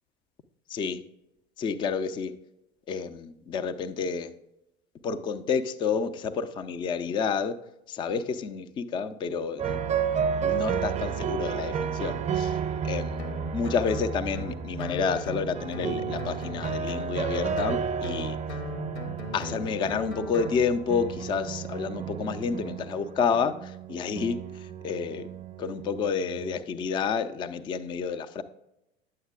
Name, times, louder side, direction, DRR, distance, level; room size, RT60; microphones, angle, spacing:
voice 1, 0.7-1.0 1.6-2.3 2.9-4.3 5.0-7.6 7.9-9.8 10.4-12.6 12.8-18.4 19.3-25.3 25.6-28.4, left 6 dB, 15° left, 11 dB, 0.3 m, -30 dB
sound 1, 9.6-26.6, right 7 dB, 20° right, 0.6 m, -32 dB
Guitar, 13.2-20.6, left 1 dB, 75° left, 1.3 m, -38 dB
9.2 x 7.5 x 2.3 m, 0.86 s
figure-of-eight pair, 75°, 33 cm